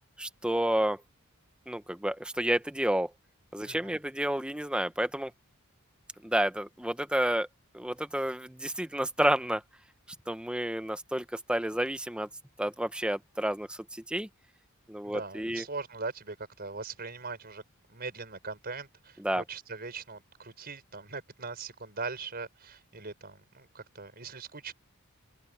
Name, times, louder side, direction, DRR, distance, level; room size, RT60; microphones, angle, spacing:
voice 1, 0.2-1.0 1.7-3.1 3.5-5.3 6.2-7.5 7.7-9.6 10.3-12.3 12.6-14.3 14.9-15.6 19.2-19.4, right 1 dB, 5° right, 0.8 m, -30 dB
voice 2, 3.6-4.0 15.0-17.6 17.9-24.7, right 4 dB, 45° right, 5.4 m, -40 dB
open air
head